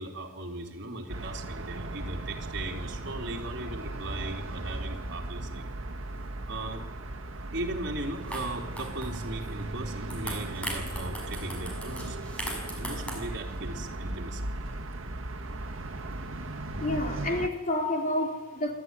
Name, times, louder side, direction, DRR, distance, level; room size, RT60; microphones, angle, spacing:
voice 1, 0.0-5.7 6.5-6.8 7.5-12.2 12.7-14.5, right 2 dB, 60° right, 0 dB, 3.8 m, -38 dB
sound 1, 1.1-17.5, right 2 dB, 85° right, 1.6 m, -37 dB
sound 2, 8.0-8.1 8.3-9.5 9.9-13.6, equal, 5° left, 6.2 m, -39 dB
voice 2, 16.8-18.7, left 1 dB, 40° left, 2 dB, 3.9 m, -29 dB
29.0 x 13.0 x 9.9 m, 1.2 s
head